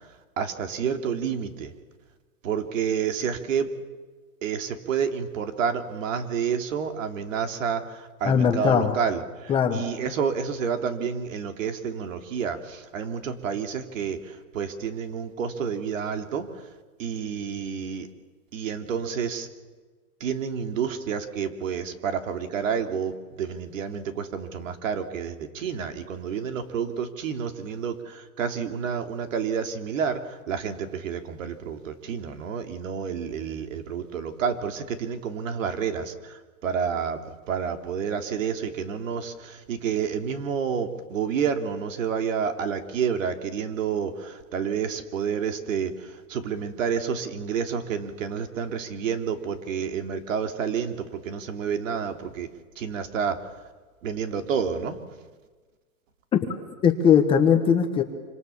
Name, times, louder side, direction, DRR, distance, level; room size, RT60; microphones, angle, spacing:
voice 1, 0.4-1.7 2.4-3.7 4.4-9.2 9.7-14.2 14.5-16.5 17.0-18.1 18.5-19.5 20.2-36.1 36.6-37.2 37.5-45.9 46.3-52.5 52.8-53.4 54.0-55.0, right 7 dB, 60° right, 6 dB, 3.2 m, -29 dB
voice 2, 8.2-9.0 9.5-9.8 56.8-58.0, left 7 dB, 10° left, 5 dB, 1.2 m, -20 dB
27.0 x 26.0 x 7.2 m, 1.3 s
hypercardioid pair, 165°, 44 cm